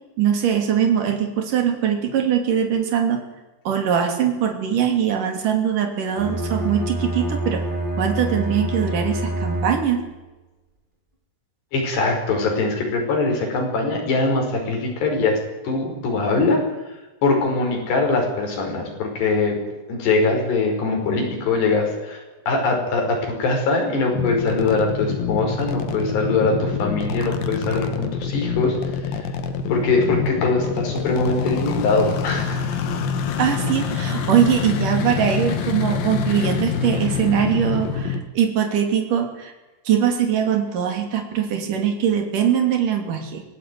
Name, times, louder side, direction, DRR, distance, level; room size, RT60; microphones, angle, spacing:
voice 1, 0.2-3.2 3.7-7.6 8.0-10.0 33.4-39.5 39.9-43.4, right 8 dB, 55° right, 5 dB, 4.3 m, -21 dB
Bowed string instrument, 6.1-10.2, right 1 dB, 10° right, 4.2 m, -27 dB
voice 2, 11.7-15.4 15.6-16.6 17.2-19.6 19.9-29.2 29.7-32.6, left 3 dB, 85° left, 1 dB, 7.6 m, -22 dB
sound 1, 24.1-38.2, left 6 dB, 65° left, 3.4 m, -26 dB
24.0 x 17.5 x 9.4 m, 1.1 s
omnidirectional pair, 4.7 m